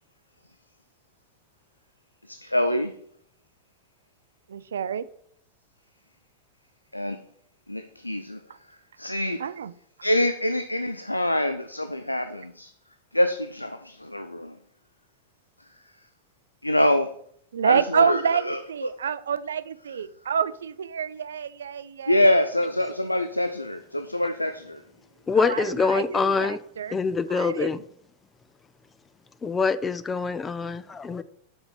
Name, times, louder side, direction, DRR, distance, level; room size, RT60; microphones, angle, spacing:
voice 1, 2.3-2.9 6.9-7.2 7.7-8.4 9.0-9.5 10.0-12.7 13.1-14.6 16.6-17.1 17.6-18.9 22.1-24.8, left 1 dB, 85° left, 0.4 m, -25 dB
voice 2, 4.5-5.0 9.4-9.7 17.5-22.3 25.4-27.0 27.3-27.8, right 7 dB, 65° right, 0.4 m, -28 dB
voice 3, 25.3-26.6 26.9-27.8 29.4-31.2, left 5 dB, 15° left, 0.4 m, -25 dB
5.7 x 5.5 x 6.5 m
figure-of-eight pair, 90°, 0 cm